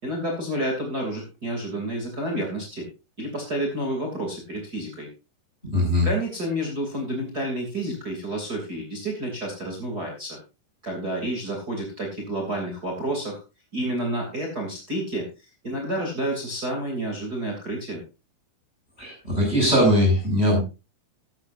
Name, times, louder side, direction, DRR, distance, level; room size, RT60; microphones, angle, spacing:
voice 1, 0.0-2.9 3.2-5.1 6.0-10.4 10.8-13.4 13.7-15.3 15.6-18.0, right 1 dB, 25° right, 1 dB, 3.2 m, -29 dB
voice 2, 5.7-6.1 19.0-20.6, left 1 dB, 15° left, -3 dB, 7.1 m, -20 dB
14.0 x 13.0 x 2.7 m, 0.28 s
omnidirectional pair, 4.5 m